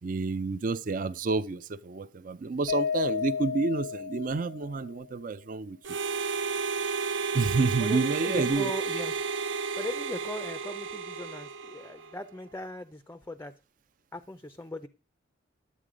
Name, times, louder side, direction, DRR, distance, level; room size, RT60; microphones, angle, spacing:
voice 1, 0.0-5.8 7.3-8.7, right 3 dB, 45° right, 0.4 m, -29 dB
Mallet percussion, 2.7-4.9, left 6 dB, 70° left, 0.5 m, -32 dB
Harmonica, 5.8-12.2, right 5 dB, 75° right, 0.9 m, -32 dB
voice 2, 7.8-9.2 9.8-13.5 14.1-14.9, left 1 dB, 10° left, 0.4 m, -38 dB
11.0 x 8.3 x 5.0 m
head